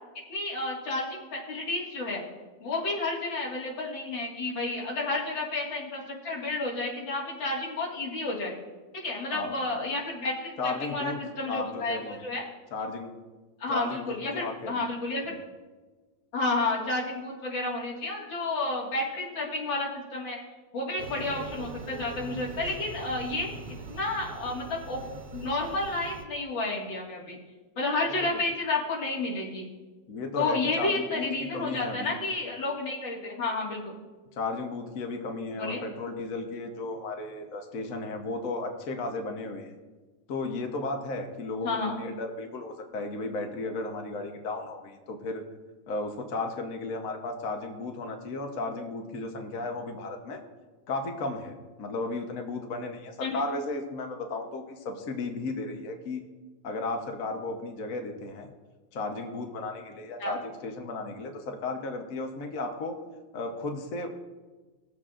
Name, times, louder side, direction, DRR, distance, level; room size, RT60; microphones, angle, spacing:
voice 1, 0.3-2.2 2.6-8.5 8.9-12.4 13.6-15.4 16.3-20.4 20.7-23.5 23.9-25.0 25.3-27.4 27.8-29.7 30.4-33.9 35.5-35.8 41.6-42.0 53.2-53.4 60.2-60.4, left 2 dB, 90° left, -3 dB, 2.7 m, -31 dB
voice 2, 9.3-9.7 10.6-11.2 11.4-12.2 12.7-13.1 13.7-14.9 15.2-15.4 28.0-28.4 30.1-32.1 34.4-39.7 40.3-45.4 45.9-50.4 50.9-56.2 56.6-58.5 58.9-63.0 63.3-64.1, left 3 dB, 50° left, 3 dB, 1.3 m, -34 dB
sound 1, 21.0-26.2, right 4 dB, 70° right, 1.4 m, -41 dB
20.0 x 7.3 x 2.5 m, 1.3 s
omnidirectional pair, 2.0 m